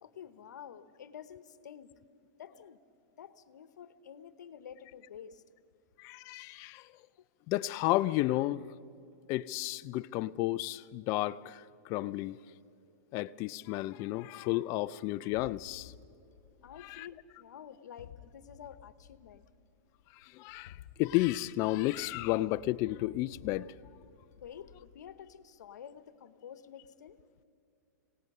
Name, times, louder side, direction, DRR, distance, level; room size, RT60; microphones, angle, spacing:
voice 1, 0.0-1.9 2.4-2.8 3.2-5.4 16.6-19.4 24.4-27.2, left 8 dB, 85° left, 1.0 m, -49 dB
voice 2, 6.0-6.9 7.5-8.7 9.3-12.4 13.1-15.9 16.8-17.1 20.2-23.7, left 17 dB, 35° left, 0.4 m, -32 dB
sound 1, 15.3-17.5 18.0-19.8 20.5-25.6, left 9 dB, 65° left, 1.4 m, -55 dB
26.0 x 18.0 x 5.5 m
hypercardioid pair, 145°, 9 cm